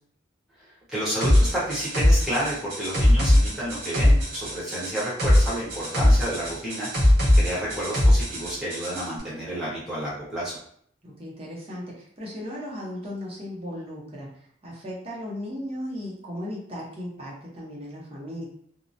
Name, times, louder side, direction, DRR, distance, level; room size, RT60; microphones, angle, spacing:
voice 1, 0.9-7.1 7.4-10.6, equal, 5° right, -9 dB, 1.0 m, -30 dB
sound 1, 1.2-9.1, left 1 dB, 60° right, 0.9 m, -21 dB
voice 2, 11.0-18.5, left 1 dB, 30° right, -4 dB, 0.8 m, -36 dB
2.8 x 2.0 x 2.6 m, 0.64 s
head